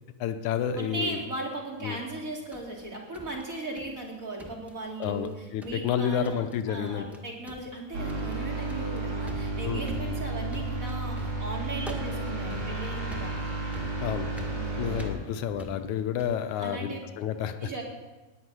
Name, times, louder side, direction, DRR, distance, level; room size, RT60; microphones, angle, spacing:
voice 1, 0.2-1.2 1.8-2.0 5.0-7.2 9.6-9.9 14.0-14.3 14.8-17.7, left 8 dB, 85° left, 9 dB, 2.3 m, -30 dB
voice 2, 0.8-13.4 14.5-15.0 16.5-17.0 17.6-17.8, right 2 dB, 30° right, -2 dB, 2.8 m, -37 dB
sound 1, 2.2-4.1 4.4-5.3 5.6-6.0 6.2-6.6 6.9-7.2 7.5-16.5, left 1 dB, ahead, 0.5 m, -45 dB
sound 2, 7.9-15.1, right 2 dB, 85° right, 4.8 m, -32 dB
18.5 x 6.3 x 9.8 m, 1.1 s
omnidirectional pair, 3.3 m